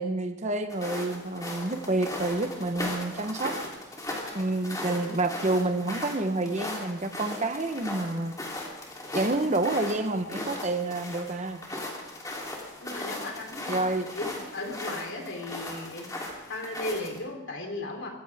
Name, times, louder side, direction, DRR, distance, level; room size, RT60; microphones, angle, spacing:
voice 1, 0.0-3.6 4.3-8.3 9.1-11.6 13.7-14.1, right 2 dB, 35° right, 7 dB, 1.0 m, -28 dB
sound 1, 0.7-17.2, left 1 dB, 15° left, 3.3 m, -38 dB
voice 2, 12.8-13.8 14.1-16.1 16.5-18.1, left 2 dB, 60° left, 2 dB, 3.6 m, -36 dB
24.0 x 15.5 x 3.6 m, 0.97 s
head